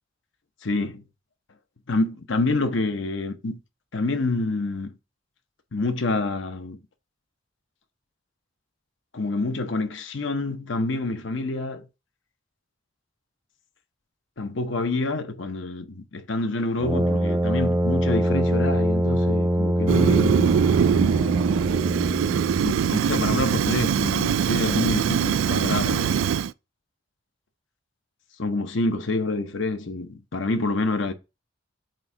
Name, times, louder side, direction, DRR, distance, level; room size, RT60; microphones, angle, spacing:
voice 1, 0.6-1.0 1.9-3.6 3.9-4.9 5.7-6.8 9.1-11.9 14.4-20.6 22.6-26.2 28.4-31.1, left 2 dB, 70° left, 0.8 m, -27 dB
Brass instrument, 16.8-22.7, equal, 15° right, 0.5 m, -24 dB
Fire, 19.9-26.5, right 8 dB, 90° right, 0.3 m, -22 dB
7.7 x 2.7 x 4.9 m
head